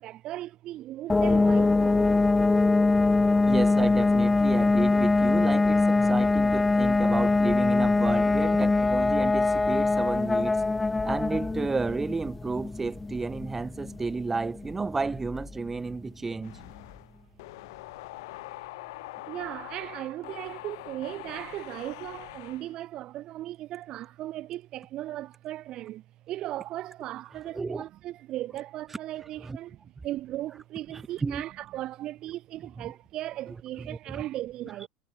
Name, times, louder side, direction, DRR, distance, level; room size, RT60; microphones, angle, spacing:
voice 1, 0.0-2.1 13.9-14.0 15.7-16.1 19.3-34.9, right 14 dB, 35° right, 0.8 m, -37 dB
sound 1, 1.1-15.7, left 3 dB, 5° left, 0.7 m, -23 dB
voice 2, 3.4-10.6 11.0-16.6 27.5-27.8 29.4-29.6 30.9-31.4 32.8-32.9 33.8-34.2, right 4 dB, 10° right, 1.5 m, -32 dB
sound 2, 16.4-22.8, left 20 dB, 75° left, 2.6 m, -43 dB
supercardioid pair, 170°, 2 cm